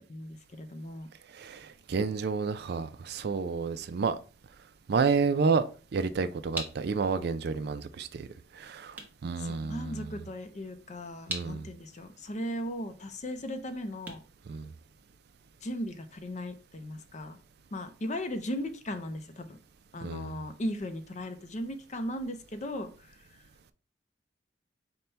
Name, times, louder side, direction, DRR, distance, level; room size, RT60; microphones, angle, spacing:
voice 1, 0.1-1.1 9.4-14.2 15.6-17.4 17.7-19.6 19.9-23.4, equal, 40° left, 0.5 m, -37 dB
voice 2, 1.3-4.2 4.9-5.6 5.9-8.3 8.6-10.0 11.3-11.6 14.5-14.7 20.0-20.3, right 5 dB, 60° right, 0.4 m, -30 dB
sound 1, 8.9-15.3, right 2 dB, 10° right, 0.9 m, -45 dB
5.3 x 2.2 x 4.3 m
head